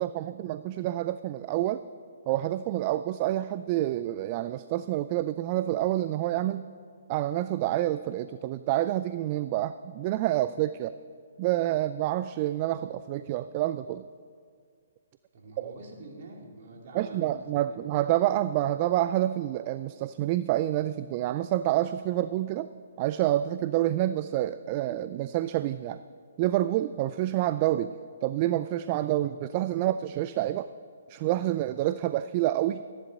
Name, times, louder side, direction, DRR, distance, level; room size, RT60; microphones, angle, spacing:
voice 1, 0.0-1.8 2.3-6.7 7.1-11.0 11.4-14.0 15.6-15.7 16.9-22.7 23.0-26.0 26.4-27.9 28.2-30.7 31.1-32.8, right 14 dB, 35° right, 13 dB, 0.3 m, -28 dB
voice 2, 15.3-17.9, right 2 dB, 55° right, 1 dB, 2.5 m, -46 dB
14.5 x 10.5 x 5.2 m, 2.1 s
hypercardioid pair, 140°, 0 cm